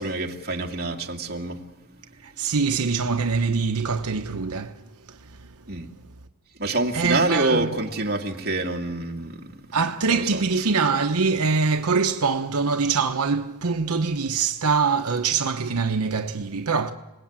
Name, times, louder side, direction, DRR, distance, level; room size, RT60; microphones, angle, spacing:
voice 1, 0.0-2.3 5.7-5.9 6.6-9.8 10.1-10.4, right 2 dB, 45° right, 2.4 m, -27 dB
voice 2, 2.2-4.8 5.1-5.5 6.9-7.7 9.7-16.9, right 5 dB, 85° right, 1.0 m, -24 dB
30.0 x 19.5 x 8.9 m
head